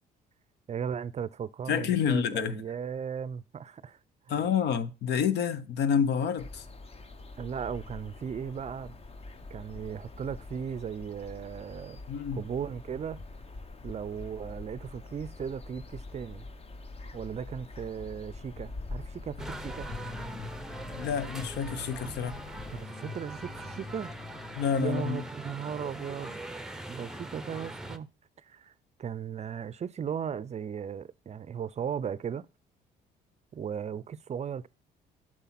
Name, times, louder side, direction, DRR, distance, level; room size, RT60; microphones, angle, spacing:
voice 1, 0.7-4.0 4.3-4.4 7.4-9.0 9.5-12.0 12.3-13.2 13.8-16.5 17.1-19.9 22.7-24.1 24.8-26.4 26.9-28.1 28.4-28.7 29.0-32.5 33.5-34.7, right 7 dB, 35° right, 0.5 m, -37 dB
voice 2, 1.7-2.6 4.3-6.6 12.1-12.4 20.9-22.4 24.6-25.2, left 7 dB, 70° left, 0.8 m, -28 dB
sound 1, 6.4-22.9, left 2 dB, 35° left, 0.9 m, -45 dB
sound 2, 19.4-24.7, left 5 dB, 85° left, 3.1 m, -45 dB
sound 3, 19.4-28.0, right 1 dB, 5° right, 0.7 m, -42 dB
8.2 x 6.2 x 5.8 m
supercardioid pair, 75°, 18 cm